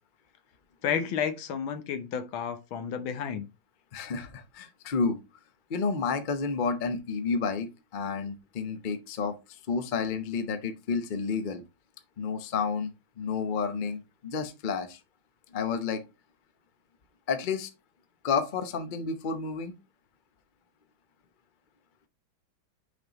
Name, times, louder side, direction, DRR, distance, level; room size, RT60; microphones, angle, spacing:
voice 1, 0.8-3.4, left 7 dB, 85° left, 1.7 m, -31 dB
voice 2, 3.9-5.2 5.7-11.6 12.2-12.9 13.2-15.0 15.5-16.0 17.3-17.7 18.2-19.7, left 5 dB, 65° left, 0.4 m, -30 dB
6.4 x 5.2 x 3.0 m
omnidirectional pair, 2.2 m